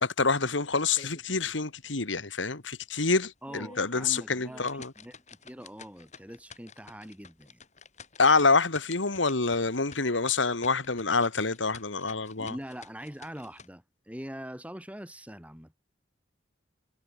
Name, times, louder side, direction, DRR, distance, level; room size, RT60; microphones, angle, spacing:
voice 1, 0.0-4.9 8.2-12.5, left 4 dB, 85° left, 2.1 m, -27 dB
sound 1, 0.9-1.6 2.0-2.1 2.6-2.7 3.3-13.7, left 4 dB, 40° left, 7.9 m, -51 dB
voice 2, 3.4-7.6 12.4-15.7, equal, 5° right, 6.3 m, -43 dB
head